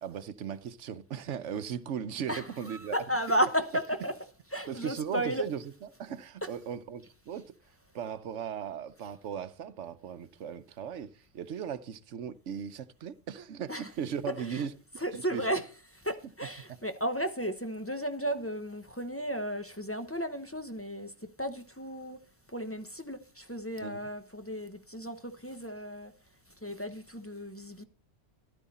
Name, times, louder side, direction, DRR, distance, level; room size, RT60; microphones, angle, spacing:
voice 1, 0.0-3.0 4.7-5.6 6.0-7.5 7.9-14.7 15.1-15.5 23.8-24.0, right 8 dB, 90° right, 1.1 m, -37 dB
voice 2, 2.3-5.5 6.4-6.6 7.3-7.4 13.7-13.9 14.2-14.7 14.9-22.2 22.5-26.1 26.6-27.8, right 1 dB, 10° left, 1.0 m, -34 dB
13.5 x 12.0 x 4.2 m
omnidirectional pair, 1.2 m